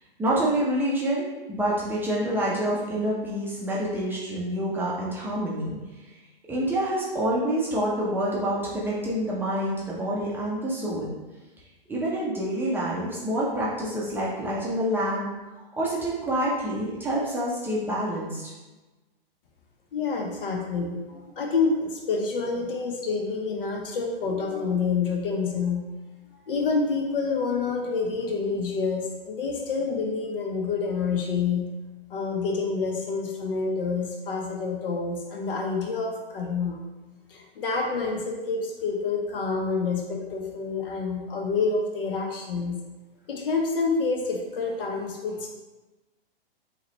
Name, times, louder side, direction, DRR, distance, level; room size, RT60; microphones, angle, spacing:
voice 1, 0.2-5.8 6.1-6.2 6.5-11.1 11.9-15.3 15.8-18.5, right 1 dB, 5° right, -7 dB, 0.5 m, -27 dB
voice 2, 19.9-25.8 26.5-31.6 32.1-36.8 37.3-42.8 43.3-45.5, left 4 dB, 65° left, 2 dB, 0.9 m, -28 dB
3.9 x 2.9 x 3.0 m, 1.1 s
hypercardioid pair, 130°, 30 cm